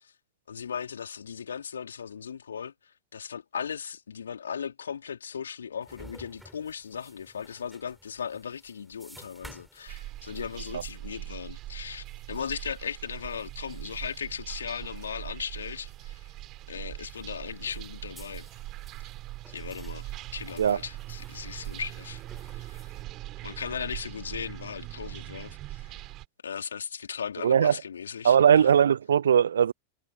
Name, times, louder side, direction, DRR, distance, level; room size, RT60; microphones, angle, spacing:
voice 1, 0.5-2.7 3.1-16.2 16.7-18.5 19.5-22.9 23.4-26.0 26.4-28.8, left 7 dB, 70° left, 3.9 m, -37 dB
sound 1, 5.8-23.0, right 1 dB, 5° right, 6.3 m, -56 dB
sound 2, 9.9-26.3, right 17 dB, 35° right, 5.9 m, -41 dB
voice 2, 27.4-27.8 28.2-29.7, right 8 dB, 65° right, 0.7 m, -20 dB
figure-of-eight pair, 90°, 0 cm